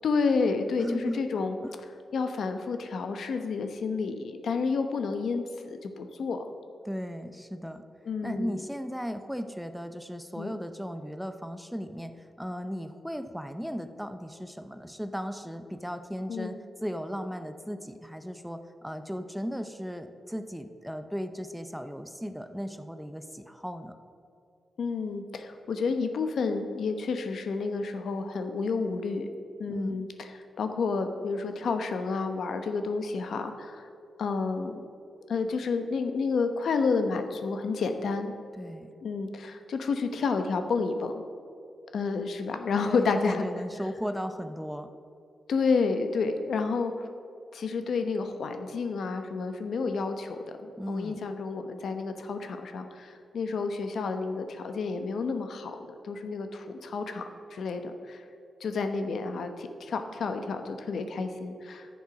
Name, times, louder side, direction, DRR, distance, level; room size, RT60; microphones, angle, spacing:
voice 1, 0.0-1.6 2.1-6.5 8.1-8.6 10.4-10.5 16.3-16.6 24.8-29.3 29.6-33.9 34.2-34.9 35.3-38.3 39.0-41.2 41.9-43.4 45.5-46.9 47.5-58.2 58.6-61.9, left 4 dB, 75° left, 7 dB, 0.9 m, -30 dB
voice 2, 0.8-1.2 1.6-1.7 6.8-7.8 8.2-24.0 29.7-30.0 38.5-38.9 42.9-44.9 50.8-51.3, equal, ahead, 9 dB, 0.6 m, -36 dB
10.0 x 7.2 x 5.9 m, 2.5 s
cardioid pair, 95°, 0 cm